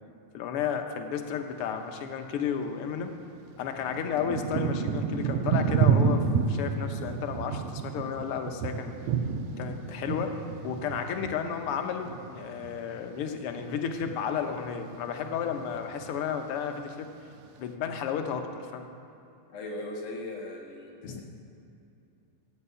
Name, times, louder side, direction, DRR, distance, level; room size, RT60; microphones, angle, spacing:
voice 1, 0.3-3.1 3.6-8.9 9.6-10.4 10.6-17.1 17.6-18.8 21.0-21.2, left 7 dB, 60° left, 5 dB, 1.6 m, -32 dB
Thunder / Rain, 2.8-2.9 3.6-13.1 13.4-14.2 14.8-15.2 15.4-16.2 16.8-16.9, right 6 dB, 75° right, 1.7 m, -29 dB
voice 2, 19.5-21.2, left 2 dB, 85° left, -1 dB, 3.5 m, -38 dB
15.5 x 8.8 x 8.2 m, 2.7 s
omnidirectional pair, 3.5 m